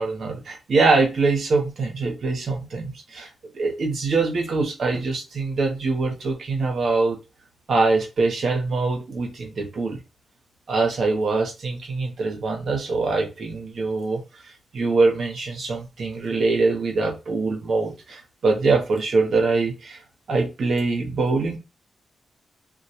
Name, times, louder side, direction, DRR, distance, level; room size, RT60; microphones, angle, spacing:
voice 1, 0.0-7.2 7.7-10.0 10.7-20.0 20.3-21.6, right 3 dB, 65° right, 0.7 m, -23 dB
2.2 x 2.2 x 2.7 m
wide cardioid pair, 110°, 0 cm